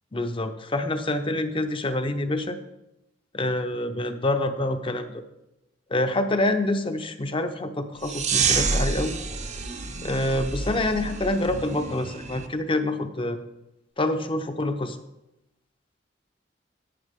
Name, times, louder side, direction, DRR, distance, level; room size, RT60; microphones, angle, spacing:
voice 1, 0.1-2.6 3.3-5.2 5.9-9.1 10.0-13.4 14.0-15.0, left 1 dB, 30° left, 8 dB, 0.8 m, -26 dB
sound 1, 8.0-12.5, right 5 dB, 40° right, 0.8 m, -28 dB
10.5 x 9.7 x 3.6 m, 0.90 s
head